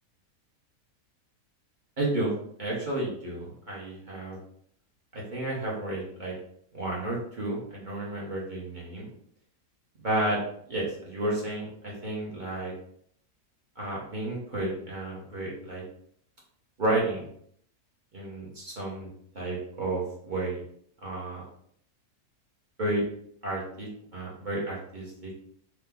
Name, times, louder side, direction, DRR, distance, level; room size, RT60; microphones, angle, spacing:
voice 1, 2.0-2.3 2.6-4.4 5.1-6.3 6.7-9.1 10.0-10.4 10.7-12.7 13.8-15.8 16.8-17.3 18.1-19.1 19.3-20.6 21.0-21.4 22.8-23.0 23.4-25.3, right 1 dB, 40° right, -5 dB, 0.8 m, -32 dB
2.9 x 2.2 x 3.4 m, 0.66 s
omnidirectional pair, 1.6 m